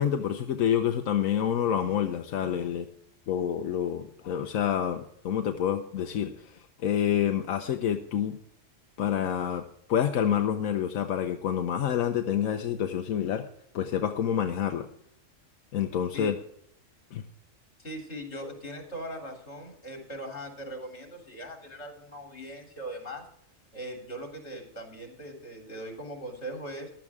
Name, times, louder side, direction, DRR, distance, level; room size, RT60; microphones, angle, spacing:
voice 1, 0.0-2.9 3.3-8.4 9.0-9.6 9.9-13.5 13.7-14.9 15.7-16.4 17.1-17.2, left 9 dB, 85° left, 6 dB, 1.2 m, -28 dB
voice 2, 17.8-23.3 23.7-26.9, equal, 55° left, 2 dB, 3.7 m, -40 dB
15.0 x 11.5 x 3.6 m, 0.69 s
omnidirectional pair, 1.4 m